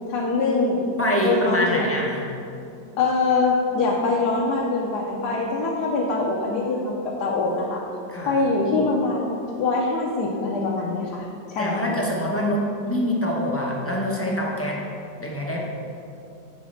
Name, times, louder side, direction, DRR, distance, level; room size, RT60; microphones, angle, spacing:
voice 1, 0.1-0.8 1.2-1.9 3.0-7.8 8.3-9.3 9.6-12.0, left 3 dB, 70° left, -3 dB, 1.3 m, -23 dB
voice 2, 1.0-2.2 8.1-8.4 11.6-14.8 15.2-15.6, equal, 20° left, -3 dB, 0.4 m, -25 dB
8.1 x 4.1 x 6.3 m, 2.6 s
omnidirectional pair, 1.9 m